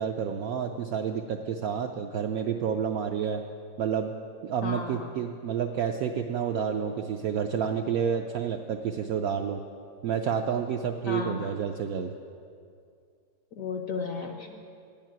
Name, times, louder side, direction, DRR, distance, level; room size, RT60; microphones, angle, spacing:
voice 1, 0.0-3.4 3.8-4.1 4.4-9.6 10.0-12.1, right 7 dB, 75° right, 4 dB, 0.8 m, -29 dB
voice 2, 4.6-5.1 11.1-11.5 13.5-14.7, left 4 dB, 70° left, 2 dB, 0.8 m, -34 dB
10.0 x 7.4 x 9.0 m, 2.4 s
omnidirectional pair, 2.0 m